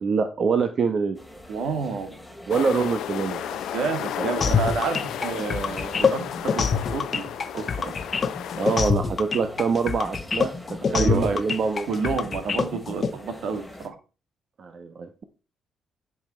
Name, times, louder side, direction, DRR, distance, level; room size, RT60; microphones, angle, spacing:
voice 1, 0.0-1.2 2.5-3.6 4.2-4.3 8.6-10.5 10.9-11.9 14.6-15.2, right 5 dB, 50° right, 7 dB, 1.1 m, -25 dB
sound 1, 1.1-13.9, left 1 dB, 5° left, 2.4 m, -44 dB
voice 2, 1.5-2.1 3.7-7.9 10.9-11.4 11.9-13.9, right 5 dB, 70° right, 7 dB, 2.3 m, -29 dB
sound 2, 2.5-8.9, left 11 dB, 80° left, 0.6 m, -33 dB
sound 3, 4.4-13.1, left 6 dB, 40° left, 1.1 m, -25 dB
10.5 x 5.9 x 4.5 m, 0.33 s
cardioid pair, 90°, 0 cm